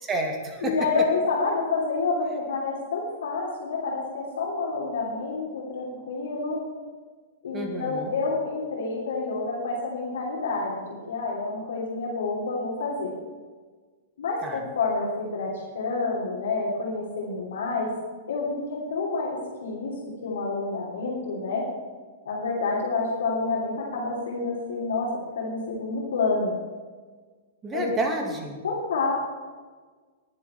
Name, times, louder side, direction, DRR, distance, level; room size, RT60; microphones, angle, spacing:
voice 1, 0.0-0.8 7.5-8.2 14.4-14.6 27.6-28.6, right 2 dB, 20° right, 3 dB, 2.6 m, -30 dB
voice 2, 0.6-6.6 7.4-10.7 11.1-13.1 14.2-17.9 18.3-18.6 18.9-19.9 20.2-21.6 22.2-25.1 25.3-26.5 27.7-27.8 28.6-29.1, left 3 dB, 65° left, -6 dB, 3.3 m, -28 dB
21.5 x 7.6 x 4.5 m, 1.4 s
figure-of-eight pair, 105°, 0 cm